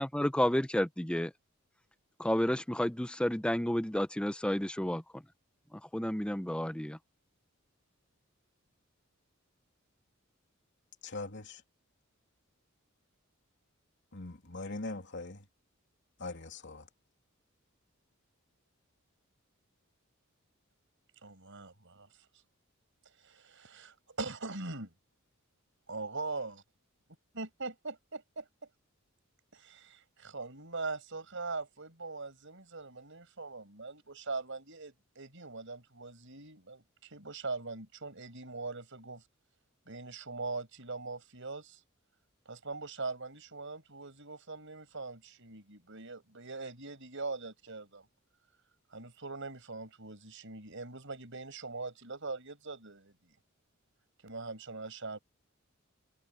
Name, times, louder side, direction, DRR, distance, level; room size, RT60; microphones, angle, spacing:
voice 1, 0.0-1.3 2.2-5.2 5.7-7.0, left 1 dB, 5° left, 0.6 m, -31 dB
voice 2, 11.0-11.6 14.1-15.4 16.2-16.9, left 3 dB, 60° left, 3.0 m, -41 dB
voice 3, 21.2-22.1 23.2-24.9 25.9-26.6 27.4-28.5 29.5-39.2 39.9-41.8 42.5-48.1 48.9-53.1 54.2-55.2, right 3 dB, 60° right, 7.1 m, -41 dB
head